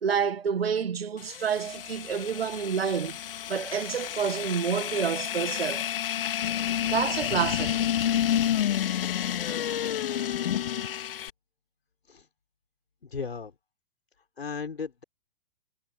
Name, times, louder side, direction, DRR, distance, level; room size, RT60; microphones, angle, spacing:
voice 1, 0.0-3.2 3.5-5.9 6.9-7.8, right 7 dB, 75° right, 1.9 m, -28 dB
sound 1, 1.2-11.3, left 10 dB, 65° left, 2.5 m, -30 dB
voice 2, 13.0-13.5 14.4-15.0, left 5 dB, 80° left, 5.5 m, -36 dB
figure-of-eight pair, 110°, 30 cm